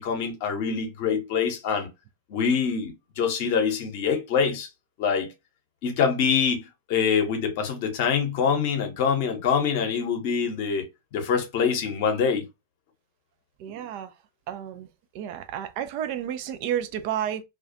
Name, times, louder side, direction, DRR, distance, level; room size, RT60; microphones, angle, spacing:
voice 1, 0.0-1.9 2.3-4.7 5.0-5.3 5.8-6.6 6.9-12.4, left 6 dB, 50° left, 0.8 m, -25 dB
voice 2, 13.6-14.1 14.5-14.9 15.1-17.4, right 10 dB, 45° right, 0.3 m, -31 dB
2.3 x 2.2 x 2.5 m
figure-of-eight pair, 95°, 0 cm